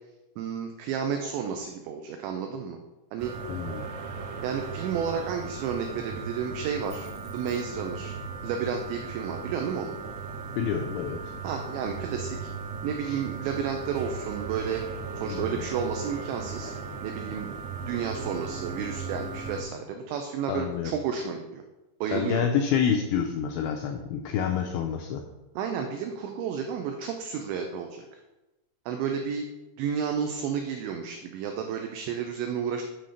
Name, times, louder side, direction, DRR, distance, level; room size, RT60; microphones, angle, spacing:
voice 1, 0.4-2.8 3.1-3.3 4.4-8.2 8.4-9.9 11.4-12.5 12.8-14.9 15.2-16.7 17.0-21.6 22.0-22.5 25.6-28.2 28.9-29.5 29.8-32.8, right 7 dB, 85° right, 5 dB, 2.5 m, -32 dB
sound 1, 3.2-19.6, right 5 dB, 70° right, 3.4 m, -37 dB
voice 2, 3.5-3.8 10.6-11.3 13.0-13.2 15.3-15.6 20.5-21.0 22.1-25.2, left 8 dB, 85° left, 3 dB, 2.6 m, -28 dB
sound 2, 6.8-7.9 8.9-9.0, equal, 45° left, 0.8 m, -55 dB
8.2 x 3.8 x 6.4 m, 1.1 s
omnidirectional pair, 5.9 m